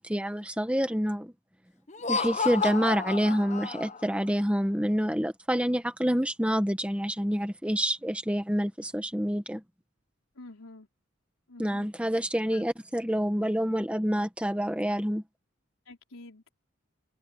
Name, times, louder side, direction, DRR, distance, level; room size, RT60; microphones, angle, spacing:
voice 1, 0.0-1.3 2.1-9.6 11.6-15.2, equal, 5° right, 1.5 m, -27 dB
Laughter, 1.9-4.2, left 5 dB, 35° left, 0.9 m, -31 dB
voice 2, 10.3-10.9 11.5-11.9 12.5-12.7 15.9-16.5, left 2 dB, 85° left, 4.4 m, -48 dB
head